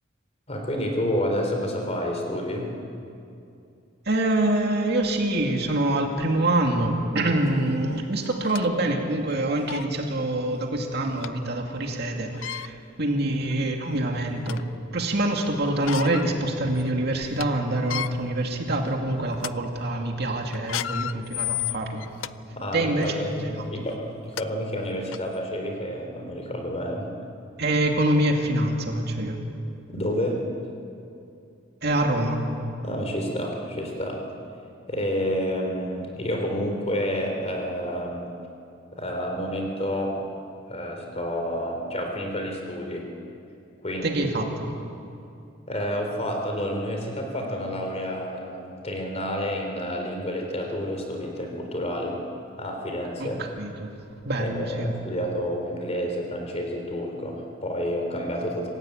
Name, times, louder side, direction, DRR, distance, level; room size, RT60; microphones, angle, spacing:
voice 1, 0.5-2.7 22.5-27.1 29.9-30.4 32.8-34.2 34.9-38.2 38.9-40.2 40.7-43.1 43.8-44.2 45.7-52.2 52.6-53.4 54.4-58.7, equal, 35° left, 2 dB, 3.8 m, -29 dB
voice 2, 4.1-14.6 14.9-22.0 22.7-23.1 23.5-23.6 27.6-29.4 31.8-32.4 44.0-44.7 53.2-53.9 54.2-54.9, right 1 dB, 55° right, 2 dB, 2.3 m, -25 dB
sound 1, 7.5-7.6 8.2-8.7 9.3-9.4 9.7-9.9 11.2-11.3 12.3-12.7 13.5-13.6 14.0-14.7 15.7-16.3 16.7-16.8 17.2-17.5 17.8-18.1 18.7-18.9 19.3-19.5 20.5-22.3 22.9-23.1 24.0-24.1 24.4-24.5 25.1-25.2, left 11 dB, 85° left, 0.5 m, -32 dB
26.5 x 15.5 x 8.8 m, 2.6 s
head